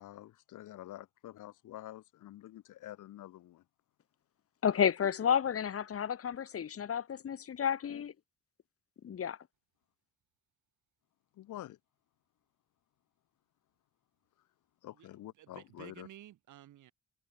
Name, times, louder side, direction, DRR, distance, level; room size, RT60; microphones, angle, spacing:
voice 1, 0.0-3.6 11.3-11.8 14.8-16.1, left 14 dB, 85° left, 6.5 m, -48 dB
voice 2, 4.6-8.1 9.0-9.4, left 8 dB, 50° left, 1.7 m, -31 dB
voice 3, 15.4-16.9, right 13 dB, 80° right, 6.3 m, -53 dB
cardioid pair, 90°, 30 cm